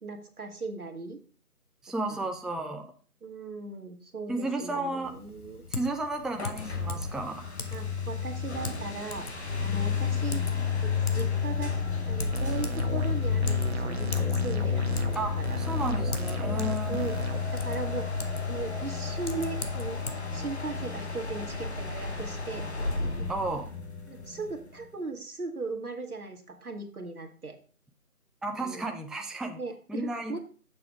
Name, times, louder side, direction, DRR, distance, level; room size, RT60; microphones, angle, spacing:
voice 1, 0.0-1.2 2.1-2.3 3.2-5.6 7.7-9.3 9.6-10.4 10.8-11.7 12.1-15.6 16.9-17.1 17.5-18.2 18.5-20.0 20.3-22.7 23.2-23.3 24.1-27.6 28.6-28.8 29.6-30.4, right 3 dB, 70° right, 4 dB, 1.4 m, -38 dB
voice 2, 1.8-2.9 4.3-5.1 5.7-7.4 15.1-17.0 23.3-23.7 28.4-29.6 29.9-30.4, right 2 dB, ahead, 4 dB, 0.4 m, -33 dB
Typing, 5.0-20.1, left 4 dB, 75° left, 1.1 m, -42 dB
sound 1, 6.3-24.8, left 5 dB, 45° left, 1.0 m, -31 dB
sound 2, 12.3-13.1 13.4-15.1 15.4-17.4, right 2 dB, 45° right, 0.9 m, -36 dB
6.9 x 5.0 x 4.6 m, 0.39 s
figure-of-eight pair, 165°, 45 cm